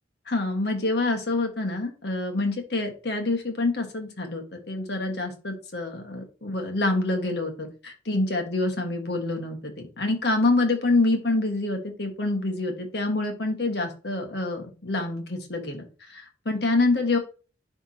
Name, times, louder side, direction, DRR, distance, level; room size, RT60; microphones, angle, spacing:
voice 1, 0.3-17.2, left 2 dB, 60° left, 4 dB, 1.5 m, -26 dB
10.5 x 3.5 x 2.8 m, 0.35 s
head